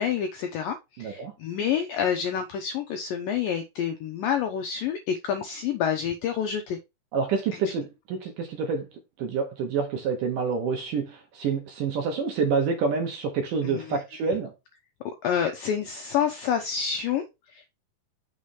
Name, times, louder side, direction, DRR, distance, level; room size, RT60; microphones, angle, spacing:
voice 1, 0.0-6.8 13.6-14.0 14.3-14.4 15.2-17.7, left 8 dB, 85° left, 2.0 m, -28 dB
voice 2, 1.0-1.3 7.1-8.9 9.2-14.5, right 5 dB, 65° right, 2.3 m, -27 dB
6.4 x 3.2 x 5.6 m
omnidirectional pair, 4.8 m